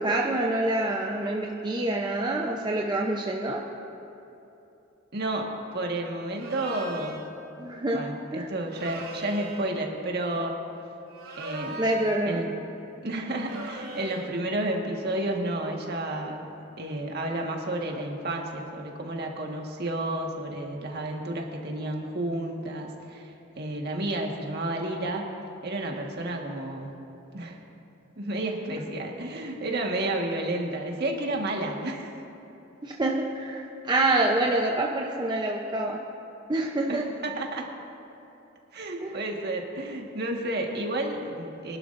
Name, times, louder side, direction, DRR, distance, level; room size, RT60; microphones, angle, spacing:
voice 1, 0.0-3.6 7.6-8.0 8.3-8.5 11.8-12.4 28.7-28.8 32.8-36.0 36.5-37.1 39.0-39.2, right 2 dB, 20° right, -1 dB, 0.7 m, -26 dB
voice 2, 5.1-7.4 7.9-10.6 11.4-11.8 12.3-12.5 13.0-25.3 25.6-26.9 27.3-27.6 28.2-32.2 36.9-37.7 38.7-41.8, right 1 dB, 50° right, 1 dB, 1.6 m, -31 dB
sound 1, 6.3-7.3 8.7-9.7 11.1-12.3 13.3-14.3, right 2 dB, 85° right, 3.0 m, -39 dB
24.0 x 11.5 x 2.6 m, 3.0 s
head